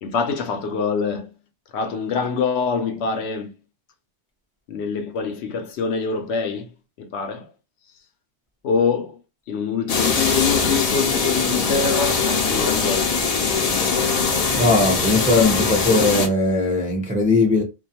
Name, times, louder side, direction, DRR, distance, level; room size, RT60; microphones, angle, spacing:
voice 1, 0.0-1.3 1.7-3.5 4.7-6.7 7.0-7.5 8.6-9.2 9.5-13.1, left 5 dB, 70° left, 0.8 m, -24 dB
sound 1, 9.9-16.3, left 5 dB, 45° left, 0.5 m, -21 dB
voice 2, 14.6-17.6, left 2 dB, 10° right, 0.3 m, -19 dB
2.4 x 2.2 x 2.7 m
omnidirectional pair, 1.2 m